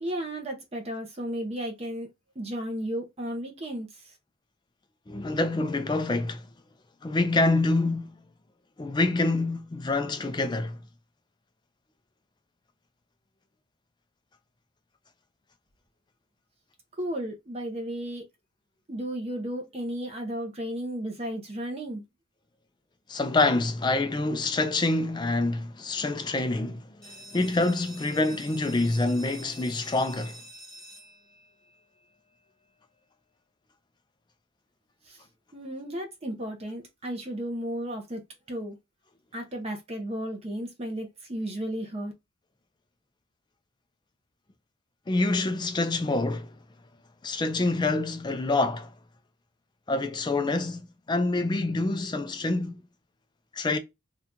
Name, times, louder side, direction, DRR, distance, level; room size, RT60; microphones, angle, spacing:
voice 1, 0.0-2.1 2.4-4.1 17.0-18.2 18.9-22.0 35.0-35.2 35.5-38.2 38.5-38.8 39.3-42.1, right 1 dB, 30° right, 0.6 m, -34 dB
voice 2, 5.1-6.5 7.0-8.2 8.8-10.8 23.1-30.4 45.1-46.6 47.2-48.9 49.9-52.8 53.5-53.8, left 2 dB, 20° left, 0.3 m, -26 dB
sound 1, 27.0-32.4, right 1 dB, 5° left, 1.0 m, -48 dB
2.8 x 2.3 x 3.6 m
head